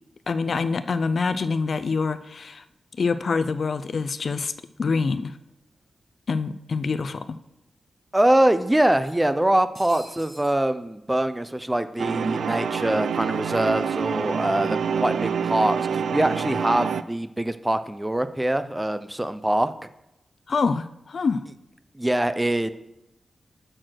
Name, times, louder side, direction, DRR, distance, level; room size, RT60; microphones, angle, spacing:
voice 1, 0.3-2.6 3.0-4.5 4.8-5.3 6.3-7.4 20.5-21.4, left 4 dB, 60° left, 12 dB, 0.4 m, -25 dB
sound 1, 5.5-5.6 5.9-6.0 7.0-7.1 7.5-7.6 8.9-10.6, right 2 dB, 45° right, 1.6 m, -48 dB
voice 2, 8.1-19.7 21.9-22.7, right 1 dB, 10° right, 12 dB, 0.5 m, -23 dB
sound 2, 12.0-17.0, right 7 dB, 85° right, 0.4 m, -26 dB
6.5 x 6.1 x 6.3 m, 0.88 s
wide cardioid pair, 95°, 0 cm